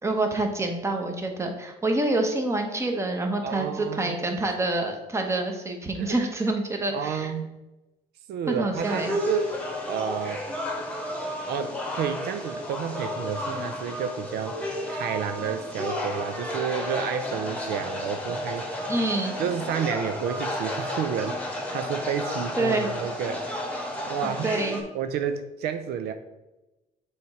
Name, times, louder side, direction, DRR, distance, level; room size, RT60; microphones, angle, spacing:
voice 1, 0.0-7.3 8.5-9.1 18.9-19.3 22.6-22.9 24.2-24.8, right 2 dB, 15° right, 3 dB, 1.1 m, -27 dB
voice 2, 3.4-4.3 6.0-6.3 6.9-7.6 8.3-10.4 11.4-14.6 14.9-18.9 19.4-23.5 24.1-24.6 24.9-26.1, right 7 dB, 75° right, 8 dB, 0.5 m, -31 dB
sound 1, 8.7-24.8, left 1 dB, 10° left, 1.3 m, -32 dB
6.9 x 3.2 x 4.9 m, 1.0 s
cardioid pair, 110°, 17 cm